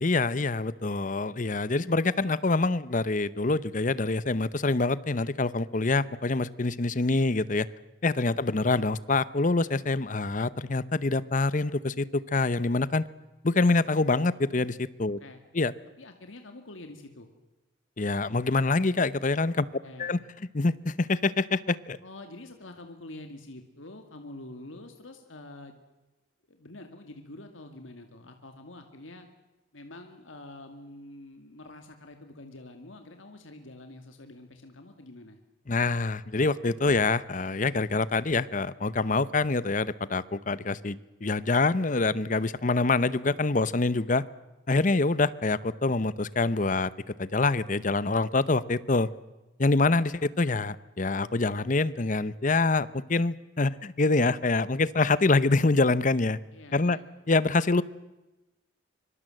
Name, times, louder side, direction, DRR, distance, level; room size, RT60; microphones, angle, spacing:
voice 1, 0.0-7.7 8.0-13.0 13.4-15.2 15.5-15.7 18.0-19.7 20.0-20.2 20.5-22.0 35.7-44.2 44.7-49.1 49.6-56.4 56.7-57.0 57.3-57.8, left 3 dB, 40° left, 18 dB, 0.8 m, -25 dB
voice 2, 16.0-17.3 19.8-20.1 22.0-25.8 26.5-29.3 29.7-35.4 56.5-57.0, left 2 dB, 85° left, 6 dB, 2.3 m, -46 dB
25.0 x 24.0 x 7.8 m, 1.1 s
head